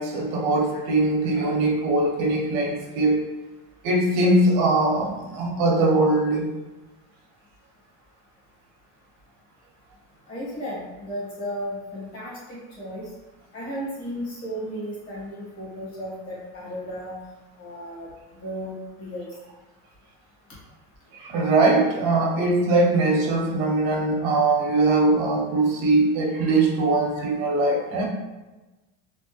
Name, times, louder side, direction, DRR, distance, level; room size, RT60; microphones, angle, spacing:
voice 1, 0.0-3.2 3.8-6.5 21.1-28.0, right 2 dB, 75° right, -1 dB, 0.8 m, -21 dB
voice 2, 10.3-13.1 13.5-17.1 17.6-18.1 18.4-19.3 24.6-24.8 27.1-27.2, equal, 35° left, -6 dB, 1.2 m, -34 dB
3.3 x 2.1 x 2.9 m, 1.1 s
cardioid pair, 175°, 38 cm